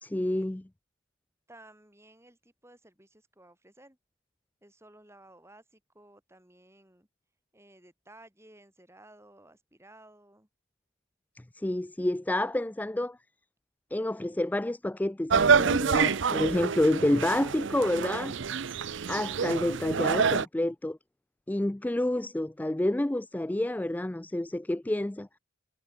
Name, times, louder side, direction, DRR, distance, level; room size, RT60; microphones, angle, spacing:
voice 1, 0.0-0.6 11.5-13.2 13.9-18.4 19.1-21.0 21.5-25.3, left 1 dB, 10° left, 0.3 m, -29 dB
voice 2, 1.5-4.0 4.6-7.1 7.5-10.5, right 1 dB, 15° right, 5.6 m, -56 dB
sound 1, 15.3-20.5, right 5 dB, 60° right, 0.6 m, -27 dB
head